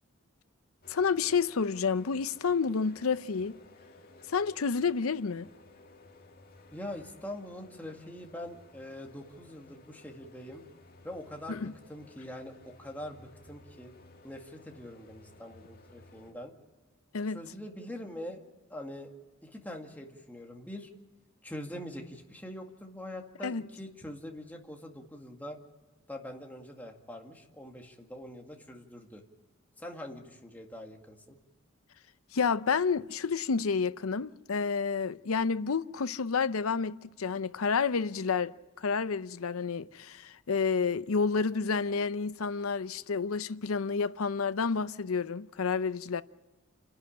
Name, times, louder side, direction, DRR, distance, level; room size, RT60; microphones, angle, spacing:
sound 1, 0.8-16.3, left 2 dB, 45° left, 2.1 m, -56 dB
voice 1, 0.9-3.6 4.3-5.5 11.5-11.7 17.1-17.4 23.4-23.6 32.3-46.2, left 5 dB, 85° left, 0.6 m, -30 dB
voice 2, 6.7-10.6 11.0-11.6 11.9-13.9 14.2-16.5 17.3-18.4 18.7-19.1 19.4-20.9 21.4-25.6 26.1-29.2 29.8-31.4, left 1 dB, 10° left, 2.1 m, -43 dB
29.0 x 11.0 x 8.7 m
head